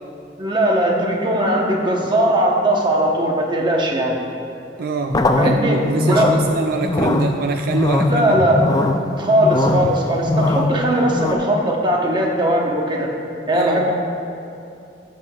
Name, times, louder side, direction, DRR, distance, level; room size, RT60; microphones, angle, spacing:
voice 1, 0.4-4.2 5.4-6.3 8.1-8.6 9.2-13.1 13.5-13.9, right 1 dB, 25° right, 0 dB, 1.0 m, -19 dB
voice 2, 4.8-8.5 13.5-13.9, right 4 dB, 60° right, 5 dB, 0.3 m, -25 dB
sound 1, 5.1-11.3, left 2 dB, 20° left, 0.4 m, -21 dB
16.0 x 6.6 x 2.3 m, 2.6 s
head